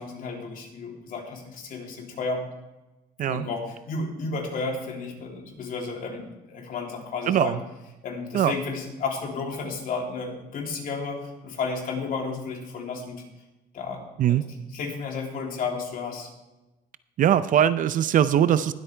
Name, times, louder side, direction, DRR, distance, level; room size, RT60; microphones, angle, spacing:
voice 1, 0.0-2.5 3.3-7.6 8.0-13.2 13.7-14.0 14.3-14.4 14.7-16.3, left 4 dB, 55° left, 0 dB, 3.2 m, -32 dB
voice 2, 7.3-7.6 8.3-8.5 14.2-14.4 17.2-18.7, right 10 dB, 50° right, 14 dB, 0.5 m, -21 dB
20.0 x 8.5 x 3.4 m, 1.1 s
cardioid pair, 110°, 17 cm